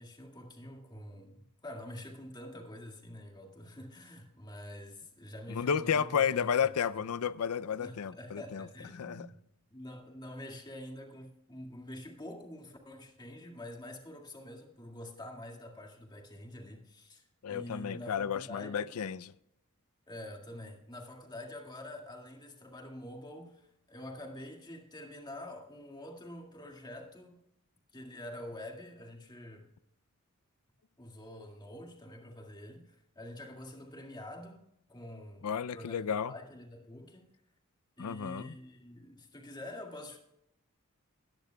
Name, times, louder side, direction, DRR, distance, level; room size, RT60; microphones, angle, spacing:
voice 1, 0.0-6.7 7.8-9.4 9.7-19.0 20.1-27.4 27.9-29.7 31.0-34.6 34.9-35.5 35.7-37.3 38.0-40.2, left 1 dB, 20° left, 2.0 m, -47 dB
voice 2, 5.5-8.7 8.9-9.3 17.4-19.3 35.4-36.3 38.0-38.6, left 7 dB, 85° left, 0.5 m, -32 dB
21.0 x 10.5 x 2.3 m
head